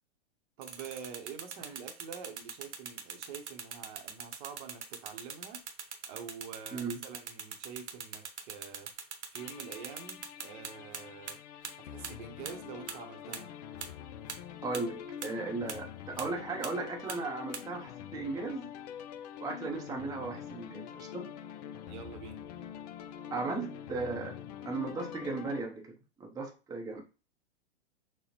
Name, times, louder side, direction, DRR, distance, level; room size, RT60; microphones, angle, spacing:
voice 1, 0.6-5.6 6.1-8.9 9.3-11.4 11.8-13.5 21.9-22.4, right 7 dB, 45° right, 0.8 m, -46 dB
sound 1, 0.6-11.0 11.3-11.4 11.6-11.7 12.0-12.1 12.5-12.6 12.9-13.0 13.3-13.4 13.8-13.9 14.3-14.4 14.7-14.8 15.2-15.3 15.7-15.8 16.2-16.3 16.6-16.7 17.1-17.2 17.5-17.6, right 6 dB, 85° right, 0.8 m, -40 dB
voice 2, 6.7-7.0 14.6-18.7 19.4-21.3 23.3-24.4 24.6-27.0, right 3 dB, 10° right, 0.7 m, -36 dB
sound 2, 9.4-25.6, left 9 dB, 40° left, 0.4 m, -45 dB
6.3 x 2.1 x 2.9 m
hypercardioid pair, 115°, 33 cm